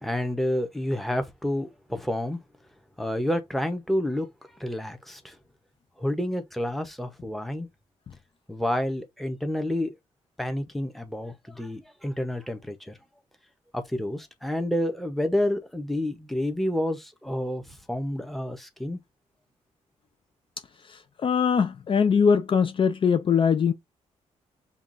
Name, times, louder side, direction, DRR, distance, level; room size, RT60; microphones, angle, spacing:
voice 1, 0.0-2.4 3.0-4.3 4.6-5.3 6.0-7.7 8.5-9.9 10.4-12.9 13.7-19.0, left 1 dB, ahead, 0.8 m, -29 dB
voice 2, 20.9-23.7, left 6 dB, 40° left, 0.4 m, -22 dB
5.7 x 2.4 x 2.6 m
cardioid pair, 95°, 13 cm